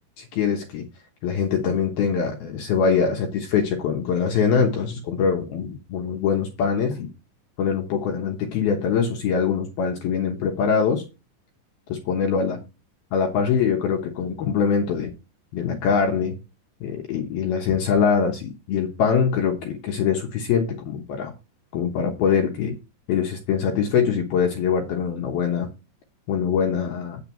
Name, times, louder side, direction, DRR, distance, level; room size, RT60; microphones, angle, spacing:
voice 1, 0.2-0.9 1.2-7.1 7.6-11.0 11.9-12.6 13.1-15.1 15.5-16.4 16.8-21.3 21.7-22.8 23.1-25.7 26.3-27.2, left 6 dB, 70° left, 2.6 m, -23 dB
8.8 x 6.9 x 4.4 m
omnidirectional pair, 5.6 m